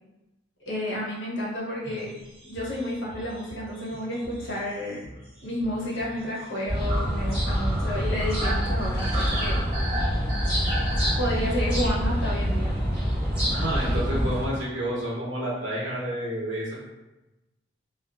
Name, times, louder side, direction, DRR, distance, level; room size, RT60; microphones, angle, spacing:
voice 1, 0.6-2.1 2.5-5.0 5.4-9.6 11.2-12.8, equal, 85° left, -5 dB, 0.9 m, -31 dB
sound 1, 1.8-11.9, equal, 35° right, 0.8 m, -37 dB
sound 2, 6.7-14.5, equal, 5° right, 1.2 m, -26 dB
voice 2, 13.5-16.8, right 1 dB, 85° right, -5 dB, 1.0 m, -29 dB
2.5 x 2.3 x 2.3 m, 1.0 s
head